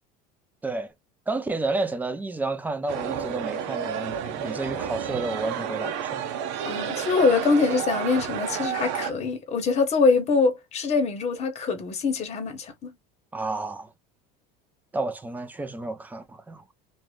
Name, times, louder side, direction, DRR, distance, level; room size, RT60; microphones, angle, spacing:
voice 1, 0.6-0.9 1.3-6.3 13.3-13.9 14.9-16.7, right 2 dB, 10° right, 0.5 m, -31 dB
sound 1, 2.9-9.1, right 8 dB, 65° right, 0.7 m, -31 dB
voice 2, 6.6-12.9, left 4 dB, 30° left, 1.0 m, -24 dB
2.6 x 2.4 x 3.2 m
cardioid pair, 135°, 21 cm